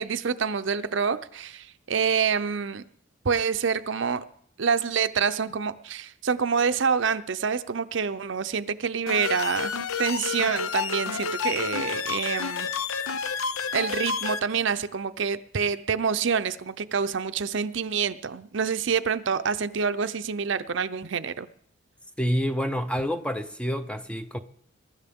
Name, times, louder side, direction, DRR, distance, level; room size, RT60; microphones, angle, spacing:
voice 1, 0.0-2.8 3.2-4.2 4.6-12.7 13.7-21.5, right 6 dB, 60° right, 0.6 m, -27 dB
sound 1, 9.1-14.4, left 6 dB, 85° left, 0.6 m, -30 dB
voice 2, 22.2-24.4, equal, 5° left, 0.5 m, -28 dB
22.5 x 11.5 x 3.6 m
head